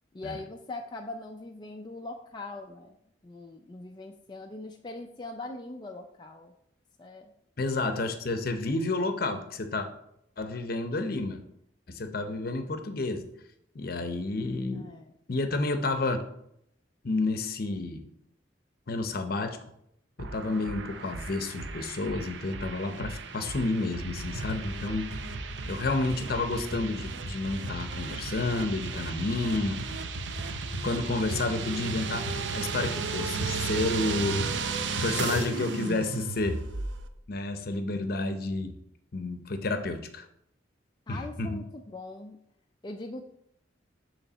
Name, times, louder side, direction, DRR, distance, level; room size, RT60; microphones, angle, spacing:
voice 1, 0.1-3.0 3.2-6.5 7.0-7.3 14.7-15.1 34.7-34.8 41.1-42.4 42.8-43.3, left 2 dB, 25° left, 3 dB, 0.4 m, -41 dB
voice 2, 7.6-9.9 10.4-11.4 11.9-13.2 13.7-14.9 15.3-16.2 17.0-18.0 18.9-19.6 20.2-25.1 25.7-29.8 30.8-34.7 35.0-36.6 37.3-38.8 39.1-40.2 41.1-41.6, left 2 dB, 55° left, 8 dB, 0.7 m, -30 dB
sound 1, 20.2-37.1, right 5 dB, 75° right, 0.6 m, -35 dB
sound 2, 23.9-35.6, equal, 35° right, 1.2 m, -40 dB
6.9 x 3.2 x 6.1 m, 0.75 s
head